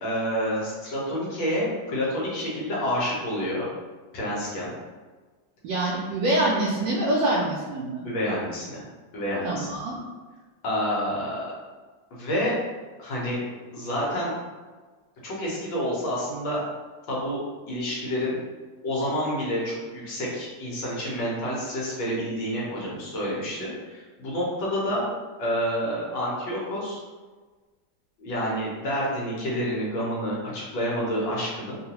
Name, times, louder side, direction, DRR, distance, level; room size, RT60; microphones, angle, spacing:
voice 1, 0.0-3.7 4.1-4.7 8.0-8.8 9.1-9.7 10.6-11.4 12.1-12.6 13.0-13.4 13.7-14.3 15.2-16.6 17.1-17.4 17.7-18.4 18.8-25.0 25.4-27.0 28.2-31.8, equal, 70° left, -5 dB, 1.6 m, -28 dB
voice 2, 5.6-8.1 9.4-10.0, right 1 dB, 75° right, -6 dB, 1.2 m, -25 dB
3.6 x 2.3 x 2.8 m, 1.3 s
omnidirectional pair, 2.2 m